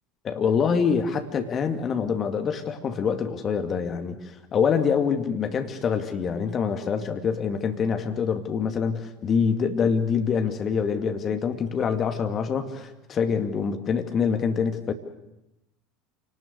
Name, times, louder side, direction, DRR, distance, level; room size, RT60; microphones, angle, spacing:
voice 1, 0.2-14.9, left 6 dB, 35° left, 6 dB, 2.4 m, -25 dB
28.0 x 19.5 x 6.8 m, 0.91 s
figure-of-eight pair, 75°, 0 cm